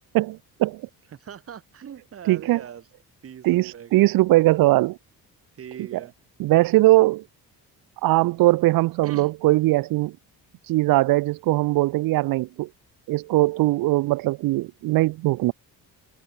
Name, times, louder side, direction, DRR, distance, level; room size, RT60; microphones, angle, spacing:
voice 1, 0.1-0.8 2.3-2.6 3.4-5.0 5.9-6.0 6.4-7.2 8.0-10.2 10.7-12.7 13.1-15.5, right 18 dB, 65° right, 0.6 m, -20 dB
voice 2, 1.1-2.9 3.2-4.1 5.6-6.1 9.0-9.3, right 8 dB, 35° right, 3.7 m, -41 dB
cardioid pair, 170°, 37 cm